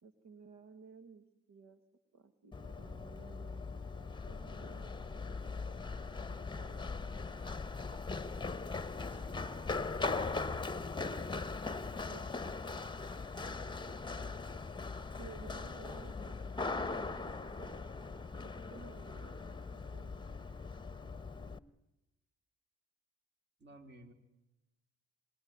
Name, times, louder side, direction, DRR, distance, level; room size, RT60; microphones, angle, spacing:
voice 1, 0.0-1.8 2.1-5.2 5.8-7.1 12.1-12.3 15.2-17.8 18.4-20.2, right 4 dB, 65° right, 9 dB, 2.1 m, -56 dB
Run, 2.5-21.6, left 4 dB, 15° left, 1.2 m, -40 dB
voice 2, 8.9-9.8 23.6-24.1, right 1 dB, 35° right, 6 dB, 4.8 m, -56 dB
26.5 x 21.0 x 9.6 m, 0.99 s
cardioid pair, 90°, 30 cm